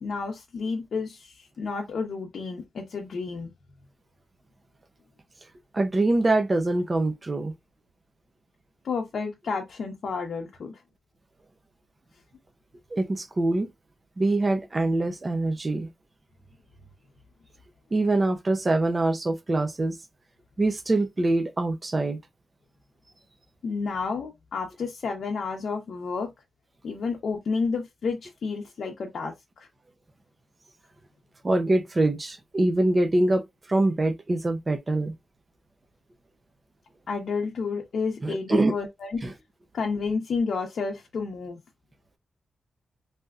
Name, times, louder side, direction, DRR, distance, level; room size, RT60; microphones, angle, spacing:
voice 1, 0.0-3.5 8.8-10.8 23.6-26.3 26.8-29.7 37.1-39.3 39.7-41.6, left 4 dB, 65° left, 0.6 m, -31 dB
voice 2, 5.7-7.5 12.9-13.7 14.2-15.9 17.9-20.0 20.6-22.2 31.4-35.1 38.2-38.7 39.2-39.3, right 2 dB, 25° right, 0.5 m, -24 dB
3.4 x 2.7 x 2.3 m
wide cardioid pair, 130°, 0 cm